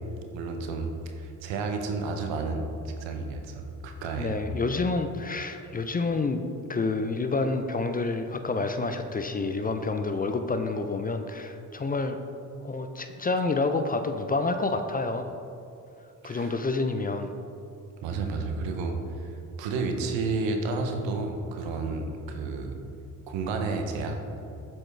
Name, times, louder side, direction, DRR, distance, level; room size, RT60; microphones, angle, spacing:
voice 1, 0.3-4.4 16.2-16.5 18.0-22.8 23.3-24.2, right 3 dB, 80° right, 4 dB, 0.8 m, -31 dB
voice 2, 4.2-6.4 6.7-12.2 12.6-15.3 16.2-17.3, left 3 dB, 20° left, 7 dB, 0.4 m, -28 dB
7.4 x 4.6 x 3.2 m, 2.6 s
hypercardioid pair, 45°, 44 cm